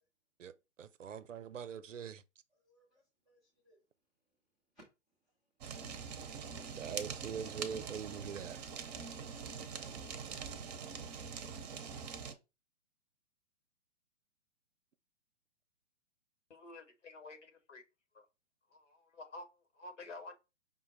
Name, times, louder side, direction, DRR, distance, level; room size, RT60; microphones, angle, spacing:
voice 1, 0.8-2.2 6.8-8.6, right 7 dB, 80° right, 0.6 m, -43 dB
voice 2, 2.5-3.8 4.7-4.8 6.0-6.8, right 1 dB, ahead, 0.3 m, -65 dB
Fire, 5.6-12.3, right 6 dB, 35° right, 0.7 m, -44 dB
voice 3, 16.5-17.8 18.1-18.2 18.7-20.3, left 2 dB, 75° left, 1.4 m, -50 dB
5.4 x 2.2 x 4.0 m
figure-of-eight pair, 120°, 37 cm